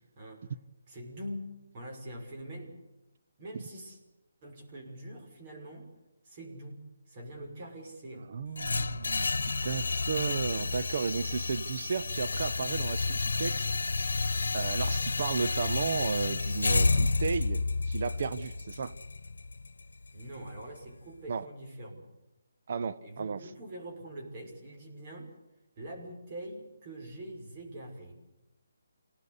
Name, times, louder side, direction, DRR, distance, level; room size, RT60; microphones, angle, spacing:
voice 1, 0.2-0.5 0.9-2.8 3.4-4.0 4.4-5.9 6.2-8.3 20.1-22.0 23.0-25.3 25.8-28.2, right 1 dB, 35° right, 5.9 m, -44 dB
voice 2, 8.3-9.4 9.6-13.7 14.5-18.9 21.3-21.5 22.7-23.4, right 5 dB, 50° right, 1.0 m, -34 dB
sound 1, 8.6-20.6, left 3 dB, 80° left, 1.1 m, -30 dB
27.5 x 18.0 x 8.2 m
hypercardioid pair, 155°, 0 cm